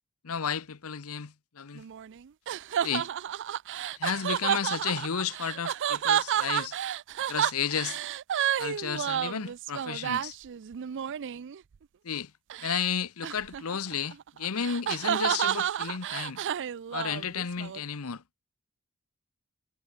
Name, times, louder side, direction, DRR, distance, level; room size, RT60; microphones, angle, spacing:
voice 1, 0.2-1.8 2.8-3.1 4.0-6.8 7.3-8.0 8.6-10.4 12.0-12.3 12.6-16.4 16.9-18.2, left 7 dB, 75° left, 0.8 m, -32 dB
sound 1, 1.7-11.6 12.5-12.9 13.2-17.8, right 10 dB, 55° right, 0.4 m, -31 dB
head